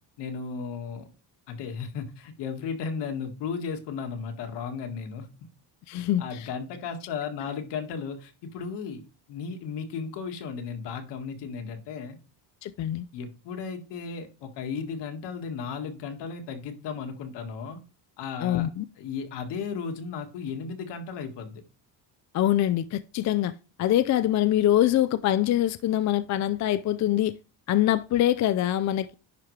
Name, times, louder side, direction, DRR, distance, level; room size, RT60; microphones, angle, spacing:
voice 1, 0.2-1.1 1.5-5.5 6.0-9.0 9.3-12.2 13.1-17.8 18.2-18.7 19.0-21.6, left 6 dB, 75° left, 1.9 m, -35 dB
voice 2, 5.9-6.5 12.6-13.1 18.4-18.8 22.3-23.5 23.8-27.3 27.7-29.1, left 12 dB, 45° left, 0.4 m, -24 dB
10.5 x 5.1 x 3.2 m
cardioid pair, 140°, 41 cm